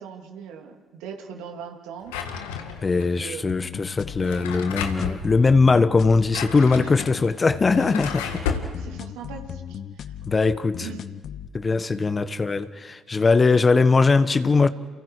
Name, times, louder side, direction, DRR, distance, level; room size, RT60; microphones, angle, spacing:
voice 1, 0.0-2.2 2.9-3.7 6.8-6.9 8.3-10.1 10.8-11.0 11.9-12.1, right 7 dB, 75° right, 3.0 m, -40 dB
Drawer open or close, 2.1-3.0 4.1-5.2 6.1-8.7, left 7 dB, 80° left, 1.9 m, -32 dB
voice 2, 2.8-8.5 10.3-10.9 11.5-14.7, left 4 dB, 30° left, 1.2 m, -20 dB
sound 1, 3.5-11.5, left 9 dB, 55° left, 1.0 m, -37 dB
30.0 x 29.0 x 4.9 m
hypercardioid pair, 55°, 0 cm